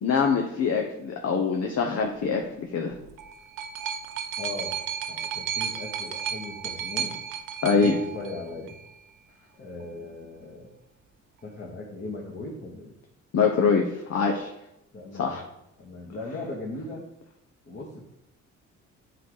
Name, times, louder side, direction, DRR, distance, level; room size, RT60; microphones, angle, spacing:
voice 1, 0.0-2.4 2.7-2.9 7.6-8.0 13.3-13.8 14.1-14.5 15.1-15.4, left 5 dB, 55° left, 2 dB, 1.1 m, -23 dB
sound 1, 2.9-8.9 9.8-9.9, right 8 dB, 90° right, 0.7 m, -34 dB
voice 2, 4.4-4.8 5.1-7.2 7.7-8.8 9.6-10.8 11.4-13.0 14.9-15.4 15.8-17.0 17.7-18.0, left 2 dB, 35° left, -4 dB, 1.9 m, -38 dB
8.2 x 4.0 x 4.9 m, 0.85 s
cardioid pair, 90°, 30 cm